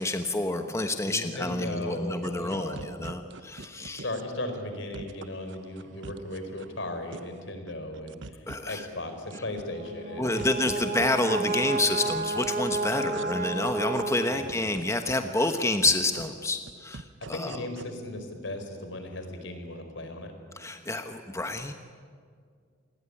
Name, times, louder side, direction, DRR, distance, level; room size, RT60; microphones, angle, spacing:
voice 1, 0.0-4.0 8.5-8.9 10.2-17.0 17.3-17.6 20.6-21.7, left 2 dB, 15° left, 6 dB, 1.1 m, -28 dB
voice 2, 1.0-3.0 3.8-10.4 12.9-13.3 14.3-14.6 17.3-20.3, left 1 dB, 70° left, 7 dB, 4.6 m, -37 dB
sound 1, 2.2-4.2 4.5-4.6 4.9-6.7 7.1-7.4 7.7-8.8 9.1-9.9 10.2-11.1 11.5-12.1 12.4-12.9 13.1-13.3 13.7-15.1 15.4-15.5 15.8-17.8, right 3 dB, 70° right, 1.0 m, -43 dB
Brass instrument, 9.7-14.7, right 3 dB, 50° right, 3.2 m, -31 dB
28.0 x 20.5 x 10.0 m, 2.1 s
head